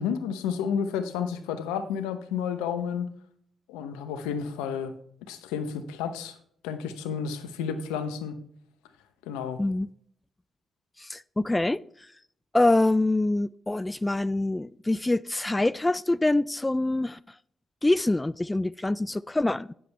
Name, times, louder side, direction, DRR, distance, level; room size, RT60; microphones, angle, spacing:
voice 1, 0.0-3.1 3.7-4.9 5.3-6.4 6.6-8.4 9.3-9.6, left 7 dB, 85° left, 0.8 m, -31 dB
voice 2, 11.0-12.1 12.5-17.4 17.8-19.7, left 2 dB, 20° left, 0.3 m, -25 dB
9.4 x 7.4 x 3.4 m
hypercardioid pair, 45°, 0 cm